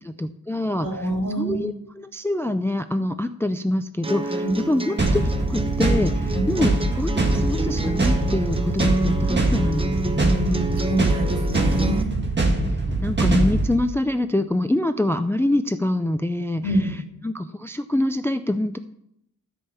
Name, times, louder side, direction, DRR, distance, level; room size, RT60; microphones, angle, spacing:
voice 1, 0.0-10.7 12.7-16.8 17.2-18.8, left 1 dB, 5° left, 10 dB, 0.4 m, -25 dB
voice 2, 0.8-1.7 4.4-4.6 6.3-6.5 10.2-12.1 16.6-17.0, right 1 dB, 65° right, -1 dB, 3.6 m, -26 dB
sound 1, 4.0-12.0, right 2 dB, 15° right, 0.7 m, -29 dB
sound 2, 5.0-13.7, right 2 dB, 30° right, 1.7 m, -23 dB
13.0 x 5.5 x 7.0 m, 0.77 s
wide cardioid pair, 160°, 34 cm